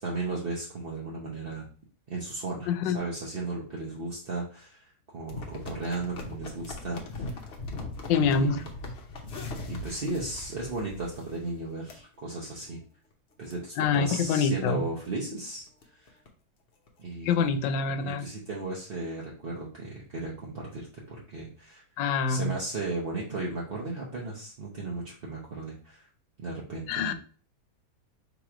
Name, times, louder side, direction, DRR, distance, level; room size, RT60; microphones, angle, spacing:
voice 1, 0.0-1.7 2.1-7.4 8.2-8.6 9.7-12.8 13.4-15.7 15.9-16.2 17.0-17.6 18.0-21.8 22.3-26.1 26.4-27.1, right 3 dB, 50° right, -3 dB, 0.7 m, -35 dB
voice 2, 2.7-3.0 8.1-8.6 13.8-14.9 17.2-18.3 22.0-22.5 26.9-27.1, left 5 dB, 85° left, 8 dB, 1.3 m, -26 dB
sound 1, 5.3-11.5 11.9-12.0 12.5-12.7 13.1-13.2 13.4-13.5 14.1-14.3 14.7-14.8 15.0-15.1 15.4-16.3 16.9-17.0, left 2 dB, 50° left, 0.8 m, -40 dB
3.5 x 3.0 x 4.8 m, 0.41 s
omnidirectional pair, 2.0 m